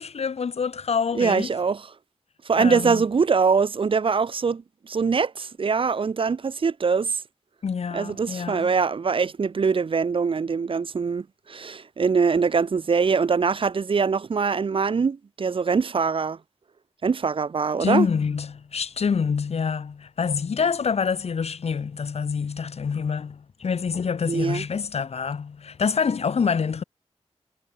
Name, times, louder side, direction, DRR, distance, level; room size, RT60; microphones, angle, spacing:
voice 1, 0.0-1.5 2.5-3.0 7.6-8.7 17.8-26.8, left 6 dB, 70° left, 0.9 m, -26 dB
voice 2, 1.1-1.9 2.5-7.2 7.9-16.4 17.0-18.1 24.3-24.6, right 5 dB, 50° right, 0.5 m, -23 dB
wide cardioid pair, 65°, 11 cm